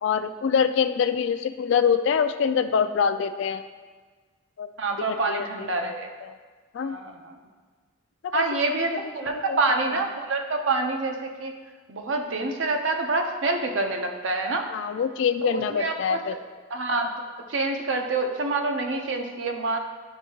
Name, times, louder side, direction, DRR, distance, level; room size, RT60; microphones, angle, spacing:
voice 1, 0.0-3.6 4.6-4.7 5.1-5.5 5.8-5.9 6.7-7.0 8.2-8.5 9.2-9.6 14.7-16.3, left 7 dB, 60° left, 10 dB, 0.3 m, -24 dB
voice 2, 4.8-6.1 6.8-7.4 8.3-11.6 11.9-14.7 15.4-16.2 16.7-17.1 17.5-19.8, right 3 dB, 70° right, 4 dB, 0.7 m, -27 dB
10.5 x 3.6 x 2.8 m, 1.5 s
head